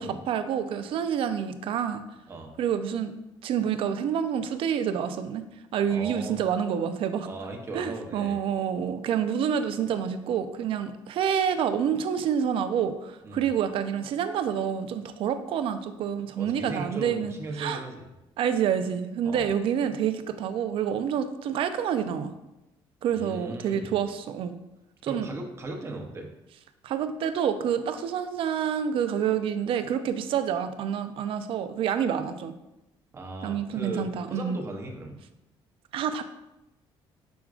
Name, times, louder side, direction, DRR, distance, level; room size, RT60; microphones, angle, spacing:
voice 1, 0.0-2.0 2.6-3.1 3.4-5.4 5.7-7.3 7.7-17.8 18.4-22.3 23.0-24.6 25.0-25.3 26.8-32.5 33.4-34.6 35.9-36.2, right 8 dB, 65° right, 10 dB, 0.4 m, -28 dB
voice 2, 5.9-6.4 7.2-8.4 13.2-13.4 16.4-18.1 19.3-19.5 23.1-23.9 25.0-26.3 33.1-35.2, right 2 dB, 25° right, 2 dB, 0.8 m, -37 dB
5.9 x 3.6 x 2.4 m, 0.94 s
cardioid pair, 110°, 10 cm